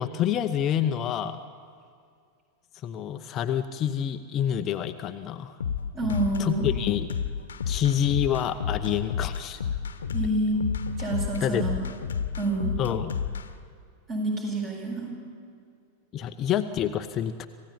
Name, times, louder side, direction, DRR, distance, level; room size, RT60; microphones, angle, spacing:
voice 1, 0.0-1.4 2.7-5.6 6.4-7.1 7.7-9.6 11.4-11.6 12.8-13.1 16.1-17.5, left 10 dB, 30° left, 8 dB, 0.8 m, -27 dB
sound 1, 5.6-13.5, left 7 dB, 70° left, 1.2 m, -30 dB
voice 2, 5.9-6.7 10.1-10.7 11.0-11.8 12.4-12.7 14.1-15.1, right 2 dB, 30° right, 0 dB, 7.9 m, -28 dB
26.5 x 16.5 x 8.9 m, 2.3 s
figure-of-eight pair, 90°, 0 cm